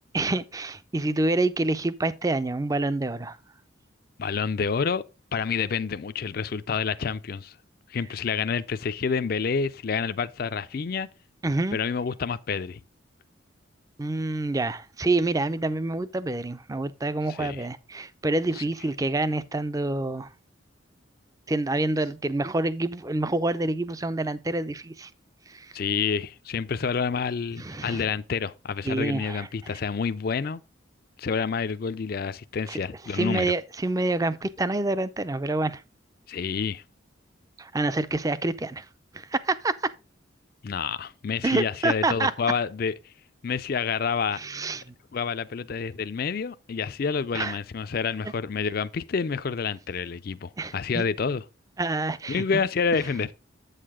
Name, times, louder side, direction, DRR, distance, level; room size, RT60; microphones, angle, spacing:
voice 1, 0.1-3.4 11.4-11.8 14.0-20.3 21.5-25.1 25.5-25.7 27.6-28.0 28.8-29.8 32.7-32.8 33.1-35.8 37.6-38.9 39.1-39.9 41.4-42.3 44.3-44.9 47.3-47.6 50.6-51.0 51.8-52.4, right 2 dB, 15° right, 0.4 m, -27 dB
voice 2, 4.2-5.0 5.3-7.6 7.9-11.1 11.7-12.8 17.4-17.7 18.5-18.6 25.7-30.6 31.2-33.5 36.3-36.8 40.6-42.9 43.4-44.4 45.1-51.4 52.3-53.3, left 5 dB, 50° left, 0.4 m, -28 dB
8.4 x 6.6 x 3.6 m
head